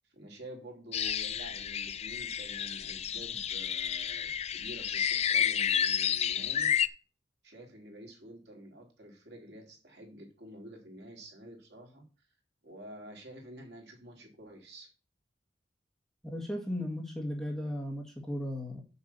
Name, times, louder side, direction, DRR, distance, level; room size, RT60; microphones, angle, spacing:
voice 1, 0.1-6.9 7.4-12.0 12.6-14.9, right 1 dB, 65° right, 1 dB, 3.4 m, -49 dB
sound 1, 0.9-6.9, left 8 dB, 35° left, 0.5 m, -31 dB
voice 2, 16.2-18.8, left 1 dB, ahead, -1 dB, 2.1 m, -36 dB
7.1 x 6.4 x 7.1 m, 0.34 s
head